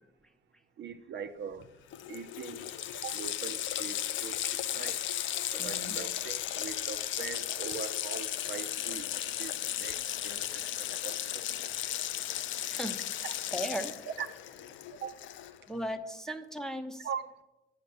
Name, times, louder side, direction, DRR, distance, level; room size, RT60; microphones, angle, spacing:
voice 1, 0.8-1.7 2.1-5.0 5.6-9.1 9.4-11.4 13.2-13.3 14.2-14.3 14.9-15.2 17.0-17.2, right 7 dB, 65° right, 0.7 m, -42 dB
Water tap faucet, 1.6-1.7 1.9-15.7, left 11 dB, 75° left, 0.5 m, -35 dB
voice 2, 5.5-6.0 12.7-13.1 13.5-14.0 15.7-17.1, equal, 5° left, 0.8 m, -37 dB
8.1 x 6.7 x 6.8 m
cardioid pair, 90°, 20 cm